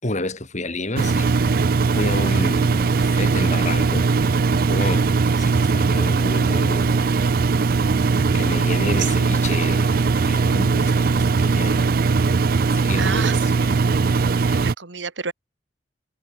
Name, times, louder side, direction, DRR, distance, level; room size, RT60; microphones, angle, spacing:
voice 1, 0.0-4.1 4.7-5.1 5.4-7.0 8.3-9.9 10.2-11.9 12.6-13.4 14.5-14.6, left 2 dB, 40° left, 4.1 m, -30 dB
Engine, 1.0-14.7, right 4 dB, 50° right, 0.5 m, -19 dB
voice 2, 5.5-5.9 9.0-9.3 13.0-13.7 14.6-15.3, right 6 dB, 80° right, 2.0 m, -30 dB
head